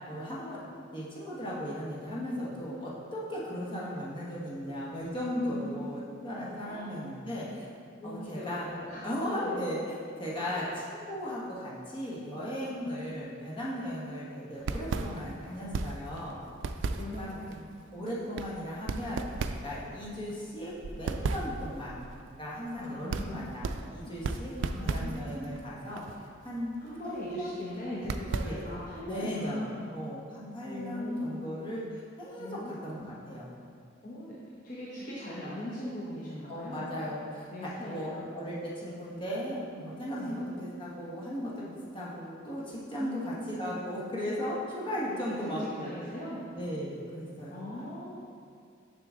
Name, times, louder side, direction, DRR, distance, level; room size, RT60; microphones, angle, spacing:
voice 1, 0.1-0.6 0.9-7.7 8.0-8.7 9.0-16.4 17.2-17.3 17.9-19.2 19.6-21.9 22.4-24.5 24.8-26.8 27.0-27.5 28.4-28.6 29.1-33.5 36.5-37.5 37.8-45.9 46.6-47.6, equal, 25° left, -6 dB, 1.4 m, -36 dB
voice 2, 5.5-5.8 6.3-6.9 8.0-9.0 9.4-9.5 10.5-10.6 17.0-17.6 22.8-24.1 24.6-25.6 26.8-29.9 30.7-31.3 32.4-33.2 34.0-36.9 37.5-38.3 40.2-40.3 43.0-43.5 45.1-46.4 47.5-48.3, left 1 dB, 45° left, -7 dB, 1.0 m, -41 dB
sound 1, 14.5-29.0, right 3 dB, 75° right, 0.3 m, -37 dB
6.8 x 5.9 x 3.8 m, 2.2 s
head